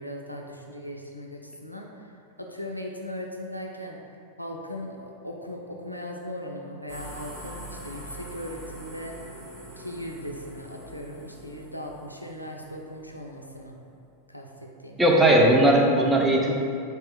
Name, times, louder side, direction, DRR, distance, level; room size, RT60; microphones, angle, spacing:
voice 1, 0.0-2.1 2.4-9.2 9.8-13.8 14.3-15.2, left 1 dB, 90° left, 1 dB, 0.3 m, -38 dB
sound 1, 6.9-13.7, right 1 dB, 60° right, 1.1 m, -44 dB
voice 2, 15.0-16.5, right 1 dB, 10° right, -2 dB, 0.5 m, -18 dB
4.3 x 3.5 x 2.5 m, 2.5 s
figure-of-eight pair, 90°, 0 cm